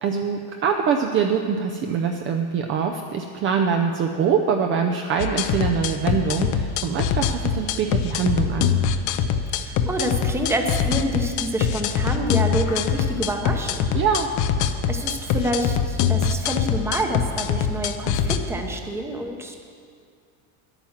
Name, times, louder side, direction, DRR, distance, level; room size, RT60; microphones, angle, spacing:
voice 1, 0.0-8.7 13.9-14.3, right 6 dB, 30° right, 4 dB, 0.5 m, -23 dB
sound 1, 5.2-18.4, left 7 dB, 50° left, 0.7 m, -23 dB
voice 2, 9.5-13.9 14.9-19.6, right 1 dB, 5° right, 3 dB, 0.8 m, -27 dB
10.5 x 8.9 x 7.3 m, 2.3 s
cardioid pair, 165°, 39 cm